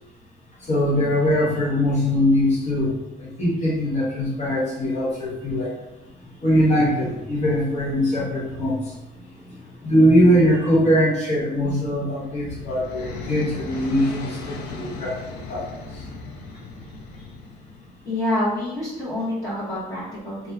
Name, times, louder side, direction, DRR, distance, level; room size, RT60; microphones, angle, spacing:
voice 1, 0.6-2.9 3.2-5.7 6.4-8.9 9.8-16.1, equal, 40° left, -5 dB, 1.0 m, -21 dB
sound 1, 12.0-18.0, left 3 dB, 70° left, 0.4 m, -37 dB
voice 2, 18.0-20.5, left 1 dB, 20° left, -10 dB, 1.2 m, -27 dB
2.7 x 2.4 x 2.4 m, 0.93 s
cardioid pair, 110°, 17 cm